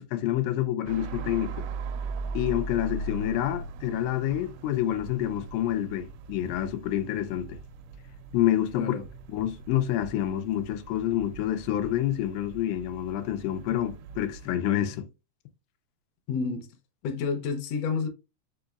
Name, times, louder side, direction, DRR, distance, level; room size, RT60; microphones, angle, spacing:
voice 1, 0.0-1.6 2.3-7.6 8.3-9.0 9.3-15.1, left 12 dB, 90° left, 2.3 m, -28 dB
sound 1, 0.9-14.5, right 3 dB, 80° right, 1.9 m, -39 dB
voice 2, 16.3-16.7 17.0-18.1, left 5 dB, 70° left, 1.6 m, -29 dB
5.3 x 3.9 x 2.3 m
omnidirectional pair, 3.8 m